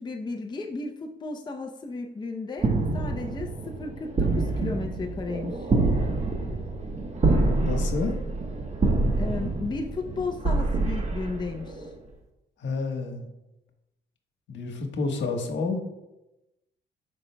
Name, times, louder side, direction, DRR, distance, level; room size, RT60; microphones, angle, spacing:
voice 1, 0.0-5.7 9.2-11.9, left 3 dB, 20° left, 3 dB, 0.6 m, -34 dB
sound 1, 2.6-11.9, right 3 dB, 35° right, 1.1 m, -26 dB
voice 2, 7.2-8.1 12.6-13.3 14.5-15.8, left 4 dB, 65° left, 3 dB, 1.3 m, -30 dB
12.5 x 5.2 x 2.2 m, 0.95 s
cardioid pair, 90°, 20 cm